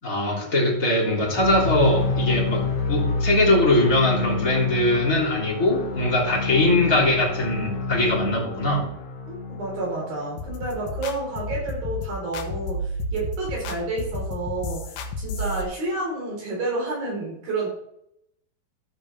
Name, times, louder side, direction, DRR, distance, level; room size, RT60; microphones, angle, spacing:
voice 1, 0.0-8.8, left 1 dB, 20° left, -4 dB, 3.2 m, -21 dB
sound 1, 1.2-11.2, left 3 dB, 55° left, 3.1 m, -28 dB
voice 2, 9.3-17.7, right 2 dB, 65° right, -2 dB, 6.1 m, -30 dB
sound 2, 10.4-15.6, left 1 dB, 90° left, 3.1 m, -31 dB
13.0 x 8.8 x 3.5 m, 0.76 s
omnidirectional pair, 4.4 m